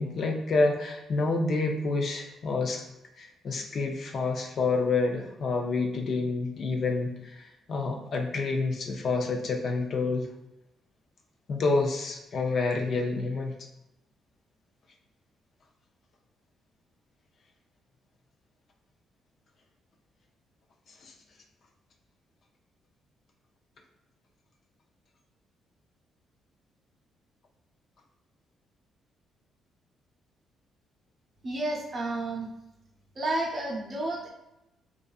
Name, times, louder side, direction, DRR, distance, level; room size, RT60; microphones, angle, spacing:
voice 1, 0.0-2.8 3.2-10.3 11.5-13.5 21.0-21.1, left 3 dB, 55° left, 2 dB, 0.4 m, -28 dB
voice 2, 31.4-32.5 33.2-34.3, right 2 dB, 40° right, -1 dB, 0.7 m, -31 dB
2.5 x 2.4 x 2.3 m, 0.93 s
cardioid pair, 90°, 0 cm